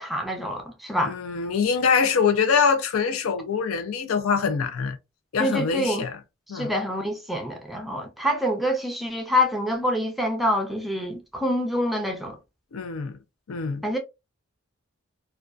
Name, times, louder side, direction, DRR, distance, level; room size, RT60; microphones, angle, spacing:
voice 1, 0.0-1.2 5.4-6.1 6.5-12.4 13.8-14.0, left 1 dB, ahead, 0.4 m, -26 dB
voice 2, 1.0-5.0 5.3-6.2 6.5-6.8 12.7-13.2 13.5-13.8, left 6 dB, 90° left, 0.5 m, -24 dB
2.5 x 2.2 x 2.2 m
head